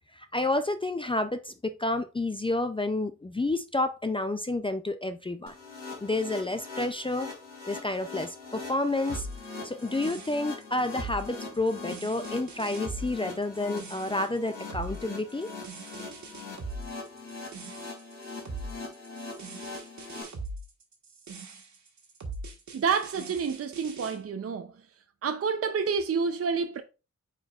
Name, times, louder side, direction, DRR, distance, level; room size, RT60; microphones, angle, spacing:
voice 1, 0.1-5.5 6.0-7.3 7.7-9.3 9.6-15.5, left 2 dB, 15° left, 0.4 m, -30 dB
sound 1, 5.5-20.2, left 3 dB, 55° left, 2.9 m, -42 dB
sound 2, 9.1-24.2, right 3 dB, 65° right, 1.5 m, -41 dB
voice 2, 22.7-24.7 25.2-26.8, right 5 dB, 50° right, 0.6 m, -28 dB
9.0 x 4.5 x 2.4 m
wide cardioid pair, 140°, 31 cm